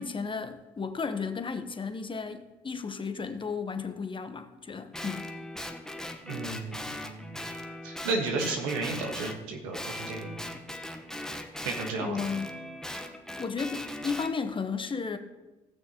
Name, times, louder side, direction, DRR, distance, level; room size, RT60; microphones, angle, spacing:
voice 1, 0.0-5.2 12.0-12.6 13.4-15.2, left 5 dB, 30° left, 8 dB, 1.0 m, -34 dB
Guitar, 4.9-9.4 9.7-14.3, left 1 dB, 5° left, 1.1 m, -39 dB
voice 2, 6.2-7.3 7.8-10.4 11.6-12.3, right 3 dB, 90° right, 2 dB, 1.5 m, -33 dB
18.0 x 6.4 x 3.0 m, 1.1 s
supercardioid pair, 65°, 18 cm